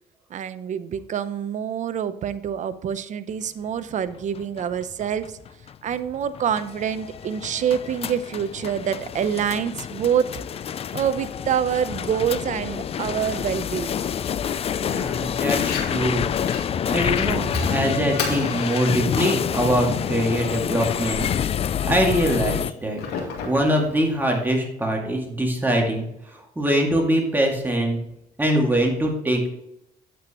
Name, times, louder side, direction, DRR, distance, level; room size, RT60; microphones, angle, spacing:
voice 1, 0.3-5.4 5.8-10.4 10.9-14.0, right 8 dB, 45° right, 13 dB, 0.7 m, -26 dB
sound 1, 4.1-22.7, left 8 dB, 35° left, 0.4 m, -28 dB
voice 2, 14.8-16.3 16.9-21.2 21.8-23.0 23.4-26.1 26.3-28.0 28.4-29.5, right 1 dB, 10° right, 0 dB, 2.2 m, -23 dB
Fire, 15.5-24.5, left 5 dB, 75° left, 2.3 m, -36 dB
9.4 x 7.7 x 3.0 m, 0.82 s
cardioid pair, 110°, 17 cm